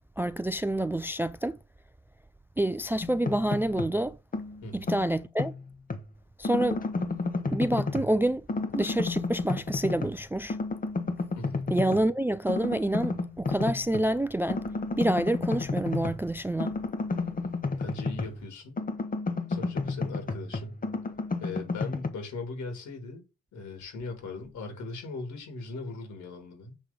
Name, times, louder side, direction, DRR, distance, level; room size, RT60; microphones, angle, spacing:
voice 1, 0.0-1.6 2.6-4.2 4.7-5.5 6.4-6.8 7.5-8.4 8.7-10.6 11.7-14.6 15.0-16.7, right 1 dB, 10° right, 0.3 m, -27 dB
sound 1, 3.0-4.0 4.3-6.1 6.4-8.2 8.5-10.2 10.5-12.1 12.5-14.1 14.5-18.5 18.8-22.1, left 3 dB, 30° left, 1.1 m, -32 dB
voice 2, 11.3-11.7 17.8-18.8 19.5-20.8 21.4-23.2 23.5-26.8, left 3 dB, 70° left, 3.0 m, -39 dB
7.4 x 3.2 x 5.3 m
cardioid pair, 90°, 30 cm